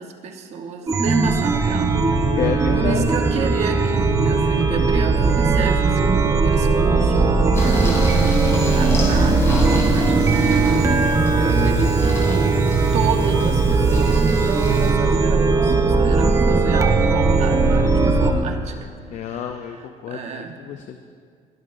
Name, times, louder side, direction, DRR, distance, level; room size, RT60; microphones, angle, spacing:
voice 1, 0.0-2.0 2.7-6.0 6.4-12.6 12.9-18.7 19.1-20.6, right 6 dB, 55° right, 4 dB, 1.3 m, -30 dB
Chime, 0.9-18.3, right 3 dB, 20° right, 0.9 m, -18 dB
voice 2, 2.3-3.1 19.1-21.0, left 8 dB, 60° left, 6 dB, 0.7 m, -29 dB
sound 1, 7.5-14.9, equal, 20° left, 3.6 m, -30 dB
23.0 x 14.5 x 2.7 m, 2.1 s
cardioid pair, 135°, 13 cm